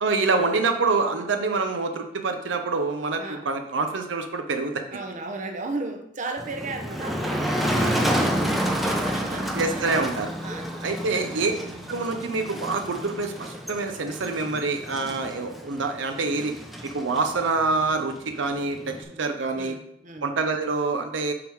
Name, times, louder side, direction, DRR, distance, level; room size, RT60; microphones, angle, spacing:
voice 1, 0.0-4.8 9.5-10.3 10.8-11.5 11.9-16.5 16.8-19.7 20.2-21.3, right 3 dB, 75° right, 5 dB, 0.7 m, -26 dB
voice 2, 4.9-10.1 10.4-11.6 19.0-19.2 19.5-20.3, right 3 dB, 40° right, 4 dB, 0.8 m, -36 dB
Motor vehicle (road), 6.4-19.0, equal, ahead, 0.7 m, -30 dB
8.5 x 3.6 x 4.7 m, 0.76 s
head